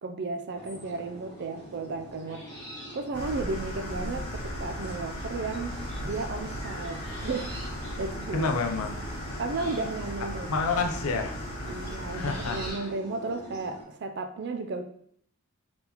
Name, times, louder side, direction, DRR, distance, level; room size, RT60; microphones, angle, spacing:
voice 1, 0.0-2.5 2.9-5.8 6.0-7.6 8.0-8.5 9.4-10.7 11.7-14.8, right 3 dB, 50° right, 7 dB, 0.4 m, -34 dB
sound 1, 0.5-13.8, equal, 10° left, 1.7 m, -44 dB
sound 2, 3.1-12.7, equal, 50° left, 1.7 m, -37 dB
voice 2, 8.3-9.0 10.5-11.4 12.0-12.9, left 4 dB, 70° left, 5 dB, 0.5 m, -29 dB
4.0 x 3.8 x 2.9 m, 0.66 s
head